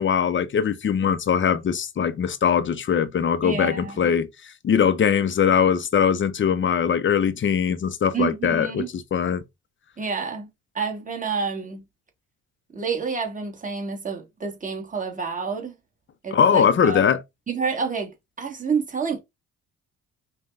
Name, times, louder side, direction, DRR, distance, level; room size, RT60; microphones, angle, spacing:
voice 1, 0.0-9.4 16.3-17.2, left 7 dB, 40° left, 0.6 m, -21 dB
voice 2, 3.4-4.1 8.1-8.9 10.0-10.5 10.7-11.8 12.7-15.7 16.2-17.0 17.5-18.1 18.4-19.2, right 5 dB, 25° right, 1.4 m, -28 dB
5.5 x 2.2 x 3.2 m
cardioid pair, 90°, 30 cm